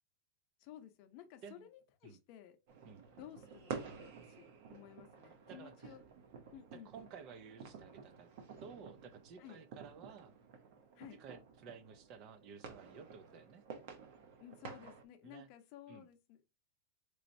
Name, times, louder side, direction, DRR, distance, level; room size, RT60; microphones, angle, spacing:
voice 1, 0.6-2.6 3.2-6.0 6.5-6.9 9.4-9.6 10.9-11.2 14.4-16.4, left 10 dB, 40° left, 0.7 m, -55 dB
sound 1, 2.7-15.0, right 6 dB, 50° right, 0.8 m, -51 dB
voice 2, 5.5-6.0 6.7-8.3 8.6-10.3 11.1-13.6 15.2-15.5 15.9-16.1, right 6 dB, 35° right, 0.4 m, -54 dB
4.0 x 3.1 x 2.6 m
supercardioid pair, 170°, 0 cm